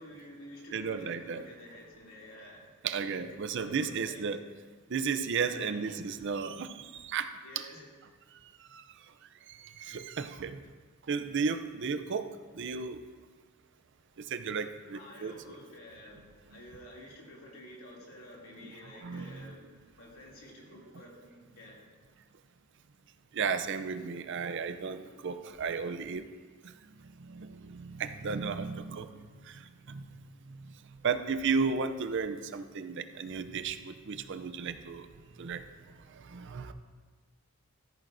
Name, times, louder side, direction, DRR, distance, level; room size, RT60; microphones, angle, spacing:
voice 1, 0.0-2.6 3.6-4.2 5.4-5.8 7.4-7.9 14.9-16.2 16.5-19.7 20.0-21.8, left 1 dB, 85° left, -4 dB, 2.7 m, -50 dB
voice 2, 0.7-1.5 2.8-4.4 4.9-7.7 8.7-8.8 9.5-10.6 11.1-13.0 14.2-15.5 18.6-19.5 23.3-26.3 26.6-26.7 27.0-30.1 30.5-30.7 31.0-35.1 35.4-35.7 36.1-36.7, right 5 dB, 60° right, 10 dB, 0.5 m, -34 dB
14.0 x 8.9 x 2.6 m, 1.4 s
head